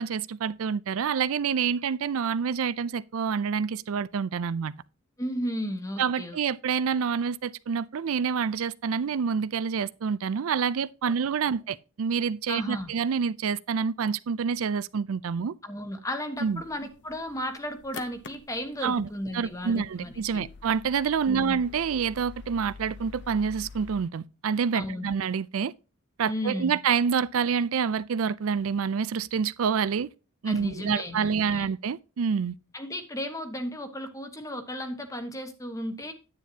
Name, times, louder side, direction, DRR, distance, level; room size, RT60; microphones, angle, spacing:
voice 1, 0.0-4.7 6.0-15.5 16.4-16.6 18.8-19.1 19.3-25.7 26.2-30.1 30.4-32.5, right 6 dB, 75° right, 0.4 m, -27 dB
voice 2, 5.2-6.4 11.0-11.1 12.5-12.9 15.6-20.5 21.2-21.6 24.7-25.1 26.3-26.8 30.4-31.7 32.7-36.1, equal, 15° left, 1.2 m, -34 dB
sound 1, 16.4-24.0, left 4 dB, 55° left, 0.9 m, -47 dB
9.8 x 9.0 x 2.8 m
head